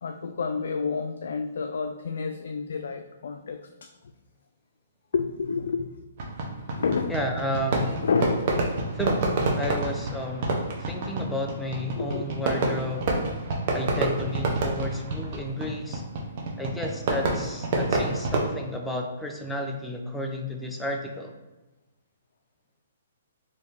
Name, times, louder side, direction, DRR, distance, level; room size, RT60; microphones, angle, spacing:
voice 1, 0.0-3.9 5.1-6.1 6.7-7.1 8.0-8.7 12.0-12.3, left 5 dB, 75° left, 5 dB, 0.3 m, -29 dB
Fireworks, 6.2-18.5, right 2 dB, 45° right, 0.9 m, -28 dB
voice 2, 7.1-8.0 8.9-13.1 13.7-16.0 16.6-21.4, left 1 dB, 5° left, 1 dB, 0.5 m, -32 dB
4.4 x 2.9 x 3.4 m, 1.1 s
hypercardioid pair, 155°, 0 cm